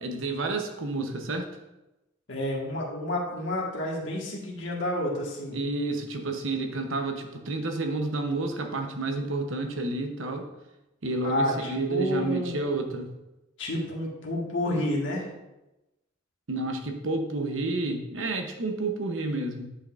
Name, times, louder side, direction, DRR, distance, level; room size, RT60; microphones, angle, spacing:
voice 1, 0.0-1.5 5.5-10.5 11.0-13.2 16.5-19.8, right 2 dB, 75° right, 4 dB, 0.9 m, -30 dB
voice 2, 2.3-5.6 11.2-12.6 13.6-15.3, left 1 dB, 65° left, -3 dB, 1.7 m, -30 dB
9.8 x 5.8 x 2.5 m, 0.98 s
head